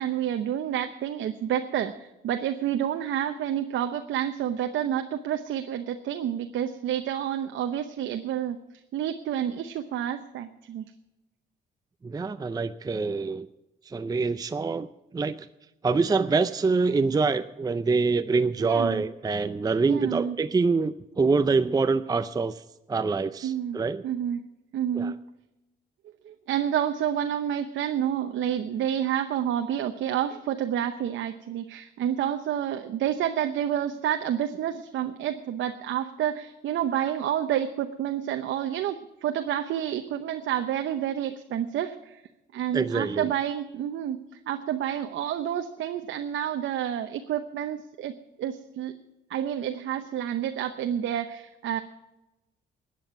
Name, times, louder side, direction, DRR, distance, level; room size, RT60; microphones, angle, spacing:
voice 1, 0.0-8.6 8.9-10.9 18.6-19.0 19.8-20.4 23.4-23.8 24.0-24.4 24.7-25.2 26.2-42.2 42.5-44.2 44.5-48.1 48.4-48.9 49.3-51.8, right 10 dB, 75° right, 7 dB, 0.8 m, -29 dB
voice 2, 12.0-13.5 13.9-14.9 15.1-15.5 15.8-22.6 22.9-24.0 24.9-25.1 42.7-43.3, right 4 dB, 20° right, 11 dB, 0.5 m, -25 dB
13.5 x 9.3 x 7.9 m, 0.97 s
cardioid pair, 90°, 20 cm